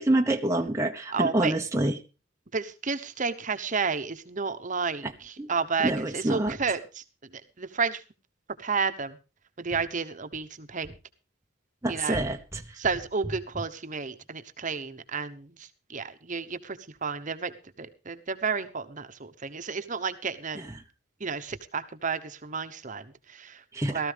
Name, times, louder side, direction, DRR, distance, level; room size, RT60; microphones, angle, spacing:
voice 1, 0.0-2.0 5.0-5.1 5.4-5.5 5.8-6.5 11.8-12.8 20.6-20.7 23.7-24.0, right 1 dB, 15° right, 0.8 m, -27 dB
voice 2, 1.1-1.5 2.5-7.0 7.3-8.0 8.6-9.2 9.6-10.9 11.9-12.2 12.8-20.6 21.2-23.6 23.9-24.1, right 5 dB, 40° right, 1.0 m, -31 dB
17.0 x 13.5 x 3.4 m
head